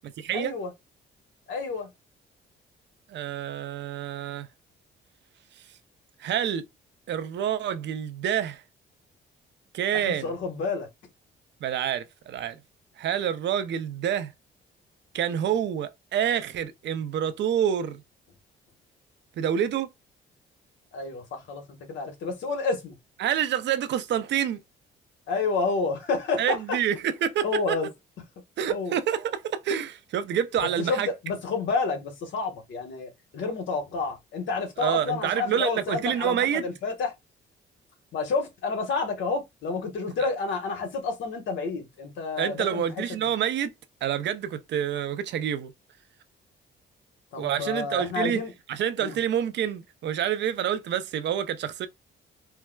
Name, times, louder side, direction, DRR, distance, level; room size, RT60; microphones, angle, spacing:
voice 1, 0.3-0.7 1.5-1.9 9.9-10.9 20.9-23.0 25.3-26.6 27.4-27.9 28.7-29.0 30.6-37.1 38.1-43.3 47.3-48.5 49.0-49.2, left 4 dB, 70° left, 1.2 m, -30 dB
voice 2, 3.1-4.5 5.6-5.7 6.2-6.6 7.1-8.6 9.7-10.3 11.6-12.6 13.0-14.3 15.1-18.0 19.4-19.9 23.2-24.6 26.4-27.8 28.6-31.1 34.8-36.6 42.4-43.7 44.0-45.7 47.4-48.4 48.7-51.9, right 9 dB, 65° right, 0.5 m, -27 dB
4.4 x 2.0 x 2.2 m
cardioid pair, 90°, 20 cm